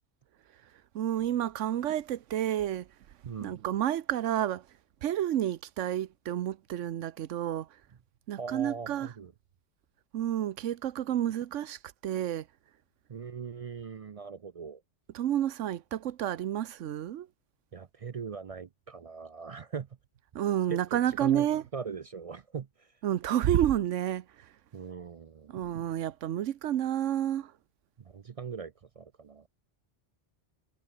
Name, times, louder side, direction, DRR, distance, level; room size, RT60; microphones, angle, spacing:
voice 1, 0.5-7.8 8.3-9.1 10.1-12.5 15.1-17.3 20.3-21.6 23.0-24.6 25.5-27.6, right 11 dB, 90° right, 1.1 m, -30 dB
voice 2, 3.2-3.6 8.4-9.3 13.1-14.8 17.7-19.9 20.7-21.5 21.7-22.9 24.7-25.6 28.0-29.5, right 6 dB, 50° right, 0.4 m, -40 dB
omnidirectional pair, 1.2 m